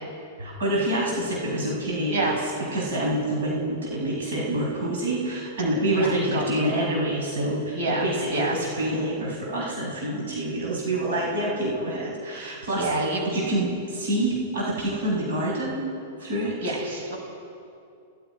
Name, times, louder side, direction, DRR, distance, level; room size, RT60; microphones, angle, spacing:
voice 1, 0.4-2.3 2.7-12.9 13.3-15.9 16.2-16.7, right 1 dB, 85° right, -3 dB, 5.9 m, -27 dB
voice 2, 5.9-6.8 7.7-8.6 12.3-13.2 16.6-17.2, right 2 dB, 65° right, 0 dB, 6.4 m, -28 dB
28.5 x 18.0 x 5.0 m, 2.5 s
hypercardioid pair, 145°, 0 cm